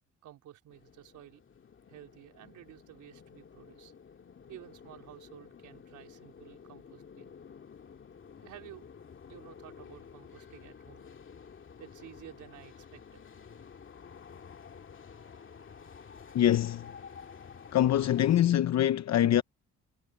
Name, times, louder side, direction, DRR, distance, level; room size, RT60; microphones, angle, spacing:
voice 1, 0.2-1.4 1.9-3.9 4.5-7.3 8.3-8.8 9.3-11.1 11.8-13.2, right 12 dB, 80° right, 4.3 m, -52 dB
sound 1, 0.7-18.4, left 6 dB, 40° left, 2.2 m, -51 dB
voice 2, 16.3-16.9 17.7-19.4, left 11 dB, 60° left, 0.8 m, -24 dB
cardioid pair, 90°, 30 cm